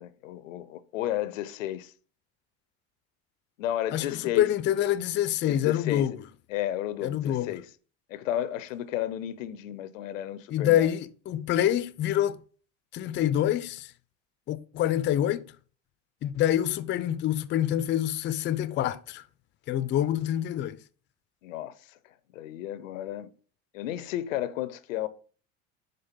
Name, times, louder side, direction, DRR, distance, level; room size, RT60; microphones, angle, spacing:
voice 1, 0.0-1.9 3.6-4.5 5.5-6.2 6.5-7.7 8.1-10.9 21.4-21.9 22.3-23.3 23.7-25.1, left 12 dB, 90° left, 0.6 m, -33 dB
voice 2, 3.9-6.1 7.0-7.6 10.5-12.4 12.9-13.9 14.5-15.5 16.2-19.2 19.7-20.8, left 11 dB, 30° left, 0.4 m, -26 dB
5.2 x 3.8 x 5.6 m
hypercardioid pair, 85°, 38 cm